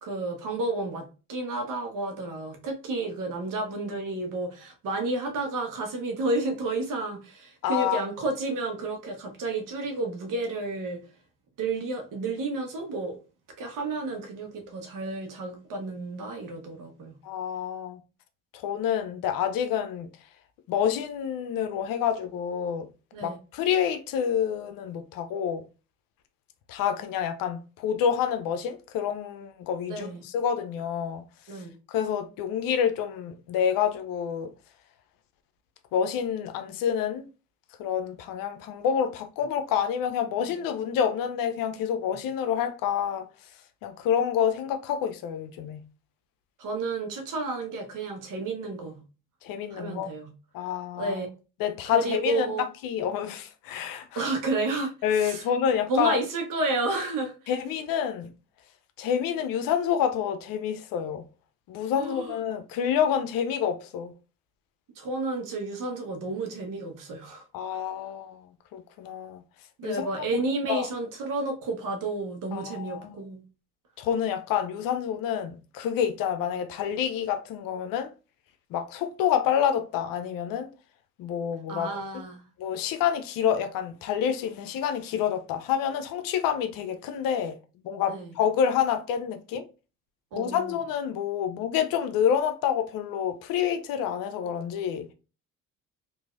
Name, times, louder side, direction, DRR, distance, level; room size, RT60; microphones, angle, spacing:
voice 1, 0.0-11.0 11.6-13.2 13.6-17.2 23.1-23.4 29.9-30.2 31.5-31.7 46.6-49.0 49.7-50.3 51.0-51.3 51.9-52.6 54.1-55.4 55.9-57.3 62.0-62.4 65.0-67.8 69.8-73.4 81.7-82.4 88.1-88.3 90.3-90.8, right 2 dB, 60° right, 1.1 m, -31 dB
voice 2, 7.6-8.0 17.2-18.0 18.5-20.1 20.7-22.9 23.2-25.6 26.7-31.2 31.9-34.5 35.9-37.3 37.8-43.3 43.8-45.8 49.4-50.1 50.5-51.2 51.6-54.3 55.0-56.2 57.5-58.3 59.0-61.2 61.7-64.1 67.5-68.5 68.7-69.4 69.8-70.4 70.7-70.9 72.5-73.2 74.0-78.1 78.7-80.7 81.2-81.9 82.6-87.6 87.8-89.7 90.3-95.1, left 8 dB, 65° left, 0.6 m, -28 dB
3.0 x 2.6 x 2.4 m
supercardioid pair, 65°, 36 cm